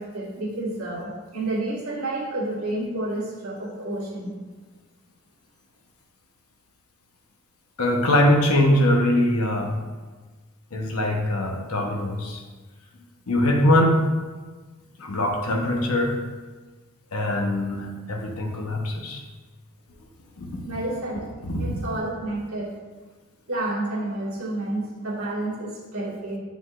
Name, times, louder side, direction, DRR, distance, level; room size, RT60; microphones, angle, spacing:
voice 1, 0.0-4.3 20.6-21.3 21.6-22.8 23.5-26.4, right 2 dB, 75° right, -6 dB, 1.9 m, -30 dB
voice 2, 7.8-9.7 10.7-12.4 13.3-14.1 15.0-16.2 17.1-19.2 20.4-20.6 21.4-21.7, left 1 dB, 85° left, 1 dB, 1.0 m, -22 dB
7.8 x 5.2 x 2.5 m, 1.3 s
head